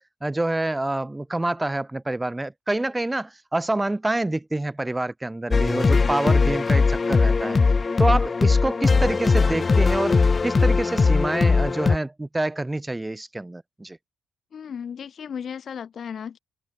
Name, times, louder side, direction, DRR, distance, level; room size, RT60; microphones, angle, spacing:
voice 1, 0.0-7.6 8.0-14.0, right 2 dB, 10° right, 2.5 m, -27 dB
sound 1, 5.5-12.0, left 4 dB, 25° left, 1.2 m, -20 dB
voice 2, 14.5-16.4, left 7 dB, 45° left, 2.0 m, -35 dB
cardioid pair, 150°, 0 cm